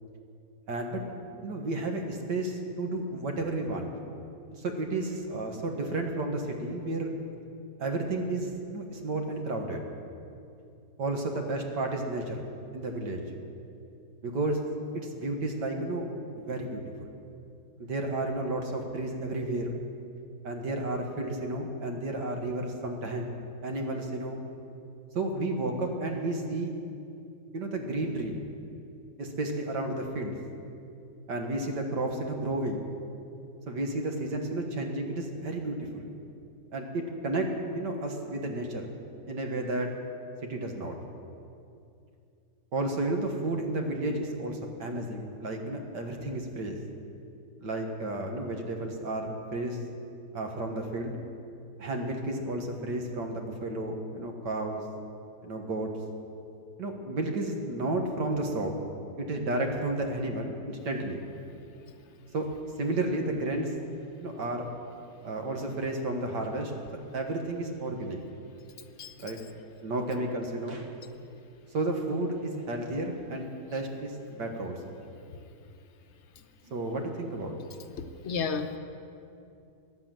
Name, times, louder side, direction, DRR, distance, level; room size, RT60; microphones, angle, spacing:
voice 1, 0.7-1.0 1.4-3.9 4.5-7.1 7.8-9.8 11.0-12.4 12.7-13.2 14.2-14.6 14.9-16.1 16.3-17.1 17.8-19.7 20.4-23.3 23.6-24.4 25.2-26.7 27.5-28.4 29.2-30.4 31.3-32.9 33.7-36.1 36.7-38.9 39.3-39.9 40.5-41.0 42.7-46.8 47.6-49.8 50.3-51.2 51.8-54.8 55.4-55.9 56.8-58.7 59.2-61.2 62.3-62.5 62.8-63.7 64.2-64.7 65.2-66.7 67.1-68.2 69.2-69.4 69.8-70.9 71.7-74.8 76.7-77.6, right 2 dB, 75° right, 3 dB, 2.1 m, -32 dB
voice 2, 78.2-78.8, left 5 dB, 50° left, 8 dB, 1.0 m, -31 dB
14.5 x 10.5 x 7.7 m, 2.5 s
omnidirectional pair, 1.9 m